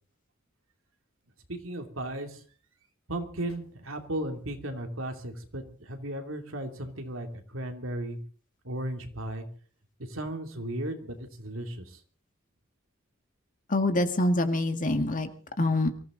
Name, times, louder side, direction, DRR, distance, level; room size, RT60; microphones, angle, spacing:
voice 1, 1.5-2.4 3.1-8.2 8.6-9.4 10.0-12.0, right 1 dB, 70° right, 4 dB, 3.0 m, -35 dB
voice 2, 13.7-15.3 15.6-15.9, left 1 dB, 40° left, 7 dB, 1.9 m, -25 dB
24.0 x 15.5 x 4.0 m, 0.42 s
head